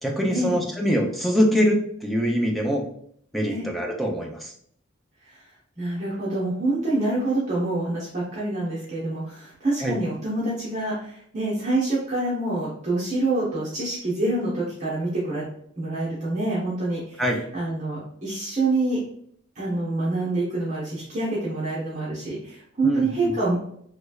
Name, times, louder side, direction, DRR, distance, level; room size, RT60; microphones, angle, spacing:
voice 1, 0.0-2.8 3.3-4.5 9.8-10.0 17.2-17.4 22.8-23.3, equal, ahead, 0 dB, 0.4 m, -23 dB
voice 2, 5.8-15.4 15.8-19.0 19.5-23.6, right 2 dB, 35° right, -8 dB, 0.9 m, -26 dB
3.2 x 3.2 x 2.3 m, 0.67 s
head